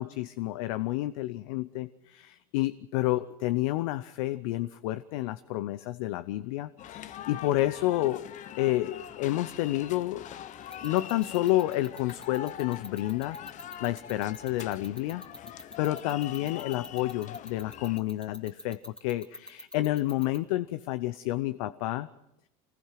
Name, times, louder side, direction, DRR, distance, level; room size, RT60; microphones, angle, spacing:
voice 1, 0.0-8.3 8.6-10.3 10.8-15.2 15.5-22.1, left 16 dB, 75° left, 14 dB, 0.7 m, -30 dB
sound 1, 6.8-18.0, left 10 dB, 45° left, 1.0 m, -43 dB
sound 2, 10.7-20.4, left 1 dB, 5° left, 1.7 m, -43 dB
25.0 x 20.5 x 5.9 m, 0.85 s
hypercardioid pair, 95°, 18 cm